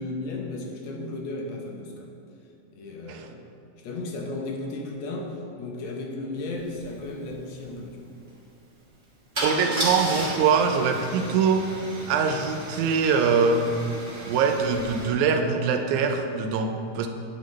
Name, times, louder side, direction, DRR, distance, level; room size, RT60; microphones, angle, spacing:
voice 1, 0.0-2.1 2.7-3.5 3.8-8.1, left 2 dB, 75° left, 0 dB, 2.0 m, -34 dB
Car / Engine starting / Idling, 6.7-6.8 7.1-7.3 9.3-15.1, right 1 dB, 35° right, 1.3 m, -34 dB
voice 2, 9.4-11.7 12.1-13.6 14.3-17.1, right 5 dB, 85° right, 5 dB, 2.0 m, -23 dB
9.4 x 6.4 x 3.1 m, 2.7 s
omnidirectional pair, 3.4 m